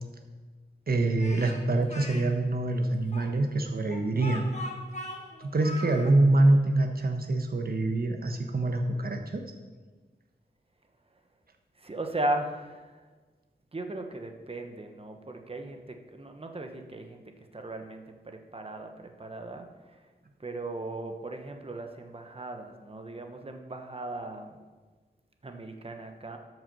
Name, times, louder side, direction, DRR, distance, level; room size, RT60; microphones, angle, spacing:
voice 1, 0.9-4.5 5.4-9.4, right 2 dB, 55° right, 4 dB, 1.2 m, -25 dB
Speech, 1.2-2.2 3.1-6.1, left 1 dB, 40° left, 1.4 m, -40 dB
voice 2, 11.8-13.0 13.7-20.0 20.4-24.6 25.4-26.4, right 1 dB, 30° right, 5 dB, 1.1 m, -37 dB
12.5 x 6.2 x 5.5 m, 1.4 s
wide cardioid pair, 110°, 18 cm